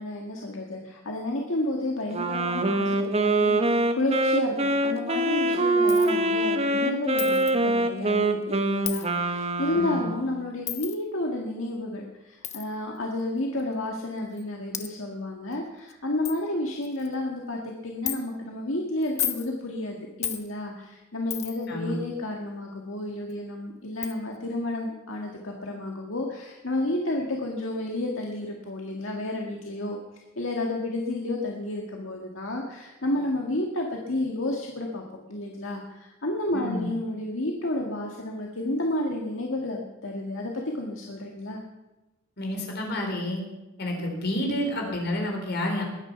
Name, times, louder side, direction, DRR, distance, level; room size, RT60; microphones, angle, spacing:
voice 1, 0.0-30.0 30.4-41.6, left 1 dB, 75° left, 0 dB, 1.9 m, -31 dB
Wind instrument woodwind instrument, 2.1-10.4, right 2 dB, 30° right, 1.2 m, -24 dB
Coin (dropping), 5.9-6.1 7.2-7.5 8.9-9.1 10.7-11.0 12.4-12.6 13.6-13.7 14.4-14.5 14.7-14.9 15.5-15.6 15.9-16.0 16.3-16.4 16.8-17.1 18.1-18.2 19.0-19.5 20.2-20.4 21.3-21.7 23.3-23.4 24.0-24.2, left 11 dB, 35° left, 1.0 m, -32 dB
voice 2, 36.5-36.9 42.4-43.4 43.8-45.8, left 1 dB, 55° left, 2 dB, 4.3 m, -29 dB
21.0 x 10.0 x 5.9 m, 1.0 s
head